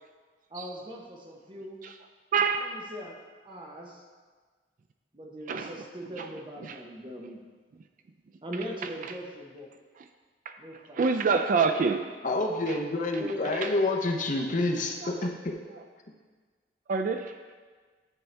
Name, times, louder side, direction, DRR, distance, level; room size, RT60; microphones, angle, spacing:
voice 1, 0.5-1.8 2.6-3.2 3.4-4.0 5.1-7.4 8.4-9.7 10.6-11.1 13.2-13.6, equal, 30° right, 0 dB, 0.9 m, -40 dB
voice 2, 2.3-2.7 5.5-5.7 6.2-6.3 10.9-12.1 15.0-15.1 16.9-17.3, right 5 dB, 50° right, 7 dB, 0.3 m, -25 dB
voice 3, 12.2-15.3, left 2 dB, 45° left, 1 dB, 0.7 m, -28 dB
9.7 x 4.5 x 3.3 m, 1.5 s
head